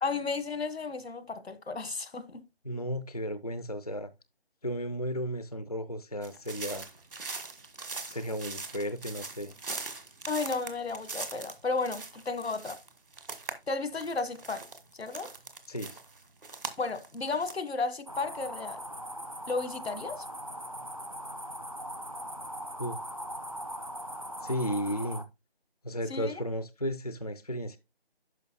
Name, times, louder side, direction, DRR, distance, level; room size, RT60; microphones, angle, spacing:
voice 1, 0.0-2.4 10.3-12.8 13.7-14.6 15.0-15.3 16.8-18.8 19.5-20.2 26.1-26.3, left 4 dB, 85° left, 1.4 m, -33 dB
voice 2, 2.6-4.1 4.6-6.9 8.1-9.5 15.7-16.0 22.8-23.0 24.4-25.2 25.8-27.8, equal, 40° left, 0.4 m, -34 dB
sound 1, 6.2-13.5 13.8-17.5, right 3 dB, 60° right, 1.5 m, -41 dB
sound 2, 18.1-25.2, equal, 35° right, 0.5 m, -40 dB
10.5 x 5.8 x 2.2 m
figure-of-eight pair, 175°, 31 cm